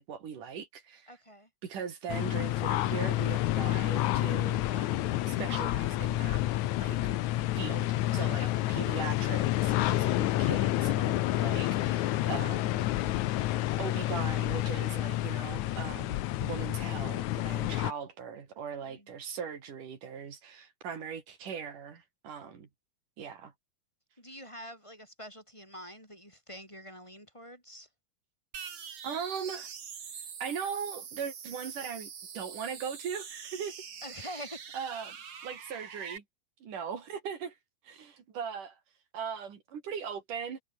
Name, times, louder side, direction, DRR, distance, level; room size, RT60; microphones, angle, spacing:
voice 1, 0.0-1.1 1.6-6.4 6.8-7.0 7.6-12.9 13.3-22.7 23.2-23.5 29.0-29.7 30.4-33.8 34.2-34.3 34.7-35.2 35.4-36.2 36.6-37.6 37.8-38.8 39.1-40.6, right 7 dB, 80° right, 4.5 m, -40 dB
voice 2, 1.1-1.5 8.4-8.8 18.8-19.1 24.2-27.9 34.0-34.6, equal, 10° left, 7.5 m, -46 dB
sound 1, 2.1-17.9, left 15 dB, 70° left, 2.2 m, -29 dB
sound 2, 28.5-36.2, right 7 dB, 45° right, 2.6 m, -44 dB
omnidirectional pair, 3.6 m